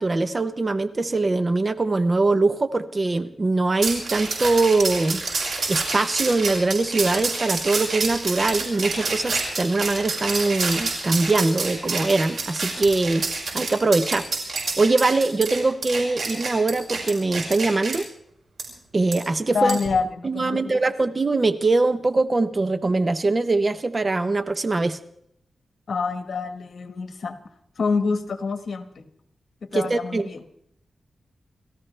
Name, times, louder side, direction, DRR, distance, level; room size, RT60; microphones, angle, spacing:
voice 1, 0.0-5.2 5.7-13.3 13.5-14.2 14.5-18.1 18.9-19.8 20.2-25.0 29.7-30.3, right 3 dB, 35° right, 0.9 m, -22 dB
sound 1, 3.8-18.0 18.6-18.7 19.1-19.2 19.7-19.9, right 3 dB, 80° right, 5.6 m, -28 dB
voice 2, 19.5-20.7 25.9-27.4 27.8-29.1 29.7-30.4, left 4 dB, 70° left, 1.5 m, -26 dB
29.5 x 14.0 x 3.4 m
wide cardioid pair, 90°, 0 cm